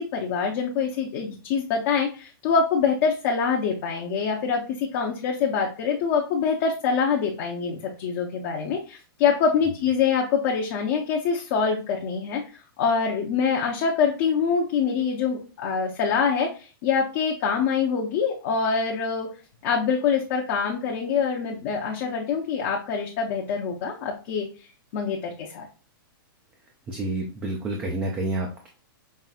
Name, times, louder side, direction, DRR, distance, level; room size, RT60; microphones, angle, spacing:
voice 1, 0.0-12.4 12.8-19.3 19.6-24.5 24.9-25.7, left 6 dB, 35° left, -1 dB, 0.6 m, -25 dB
voice 2, 26.9-28.7, right 2 dB, 10° right, 1 dB, 0.4 m, -29 dB
5.5 x 2.6 x 2.4 m, 0.36 s
supercardioid pair, 170°, 12 cm